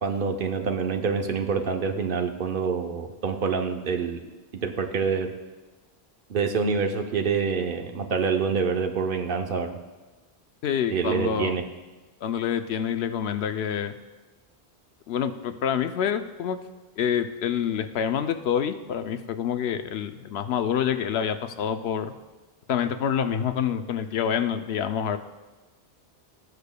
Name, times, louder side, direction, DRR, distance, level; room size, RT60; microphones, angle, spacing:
voice 1, 0.0-4.2 4.6-5.3 6.3-9.8 10.9-11.6, right 5 dB, 60° right, 5 dB, 0.8 m, -26 dB
voice 2, 10.6-11.6 12.2-13.9 15.1-16.6 17.0-22.1 22.7-25.2, left 8 dB, 80° left, 9 dB, 0.8 m, -27 dB
18.5 x 6.7 x 2.2 m, 1.2 s
omnidirectional pair, 1.1 m